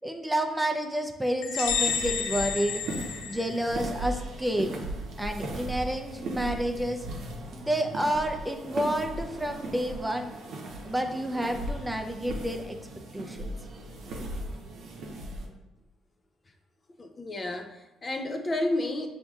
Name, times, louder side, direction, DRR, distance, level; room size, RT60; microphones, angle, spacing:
voice 1, 0.0-2.8 3.3-4.7 5.2-7.1 7.5-10.3 10.8-12.7 13.1-13.5, right 1 dB, 10° right, 4 dB, 0.5 m, -29 dB
sound 1, 1.4-4.0, left 7 dB, 85° left, 0.4 m, -31 dB
sound 2, 1.5-15.5, right 1 dB, 70° right, 0.7 m, -38 dB
voice 2, 17.0-19.1, left 1 dB, 35° left, 5 dB, 0.5 m, -31 dB
6.7 x 2.7 x 2.3 m, 1.1 s
supercardioid pair, 55°, 0 cm